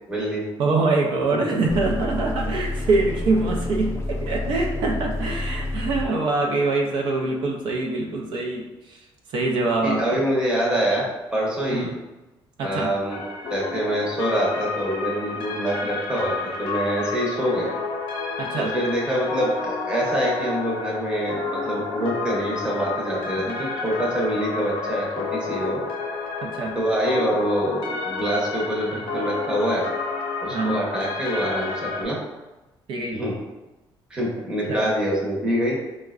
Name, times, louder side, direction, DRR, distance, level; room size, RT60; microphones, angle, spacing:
voice 1, 0.1-0.4 9.8-11.0 11.3-11.9 12.6-13.2 13.5-17.7 18.6-25.8 26.7-29.9 30.4-32.2 33.1-33.4 34.1-35.8, equal, 10° right, -4 dB, 0.7 m, -25 dB
voice 2, 0.6-9.0 9.3-10.0 11.7-11.9 12.6-12.9 18.4-18.7 26.4-26.7 30.5-30.8 32.9-33.2 34.7-34.9, right 3 dB, 65° right, 0 dB, 0.4 m, -24 dB
sound 1, 1.7-6.1, left 2 dB, 30° left, 0.4 m, -29 dB
sound 2, 13.1-32.0, left 4 dB, 80° left, 0.5 m, -30 dB
4.5 x 2.1 x 2.4 m, 1.1 s
cardioid pair, 165°, 9 cm